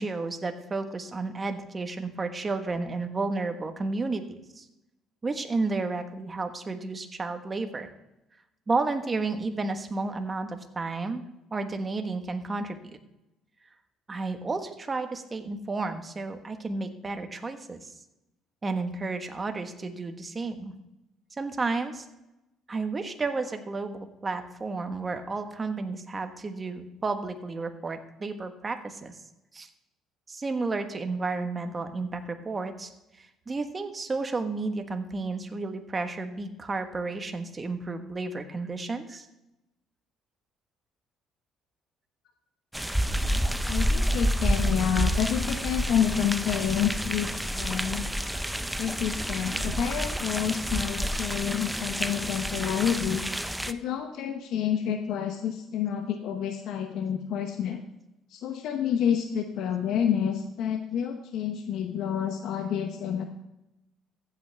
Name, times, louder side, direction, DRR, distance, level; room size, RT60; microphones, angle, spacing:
voice 1, 0.0-4.7 5.2-7.9 8.7-11.2 11.5-13.0 14.1-17.9 18.6-20.7 21.4-22.1 22.7-29.1 29.5-29.7 30.3-32.9 33.2-39.3, right 3 dB, 25° right, 7 dB, 1.3 m, -32 dB
sound 1, 42.7-53.7, equal, 5° right, 0.5 m, -29 dB
voice 2, 43.7-48.0 48.8-53.2 53.7-57.8 58.3-63.2, left 9 dB, 70° left, 6 dB, 0.8 m, -29 dB
15.0 x 8.4 x 3.4 m, 0.92 s
cardioid pair, 100°, 0 cm